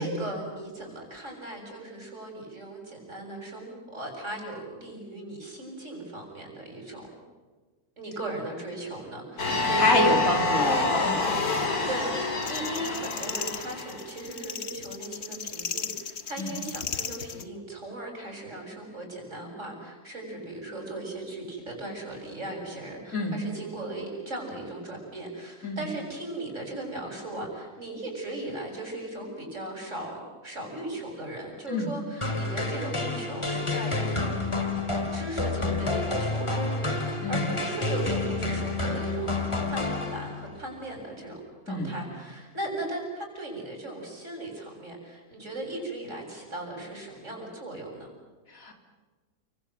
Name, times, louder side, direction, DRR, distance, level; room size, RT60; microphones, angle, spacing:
voice 1, 0.0-7.1 8.0-10.9 11.9-34.7 35.1-39.3 39.7-41.3 41.7-48.1, right 2 dB, 55° right, 1 dB, 7.9 m, -37 dB
sound 1, 9.4-14.0, left 3 dB, 85° left, 3.7 m, -27 dB
voice 2, 9.4-10.8 11.1-11.2 16.4-16.5 23.1-23.4 25.6-25.8 31.7-31.9 37.2-37.5 41.7-41.9 48.5-48.7, left 2 dB, 70° left, 4 dB, 3.7 m, -27 dB
sound 2, 12.4-17.4, left 7 dB, 50° left, 1.3 m, -36 dB
sound 3, 32.2-40.6, left 3 dB, 20° left, 2.5 m, -29 dB
29.5 x 25.0 x 7.9 m, 1.3 s
omnidirectional pair, 1.6 m